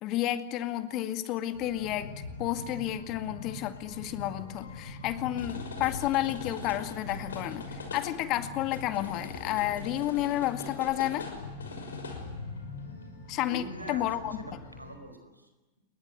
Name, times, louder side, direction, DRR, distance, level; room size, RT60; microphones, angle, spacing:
voice 1, 0.0-11.3 13.3-14.4, left 14 dB, 40° left, 9 dB, 2.1 m, -31 dB
sound 1, 1.5-15.0, left 3 dB, 70° left, 5.9 m, -41 dB
voice 2, 13.3-15.5, equal, 85° right, 7 dB, 4.8 m, -43 dB
29.0 x 22.0 x 7.8 m, 1.1 s
figure-of-eight pair, 90°, 0 cm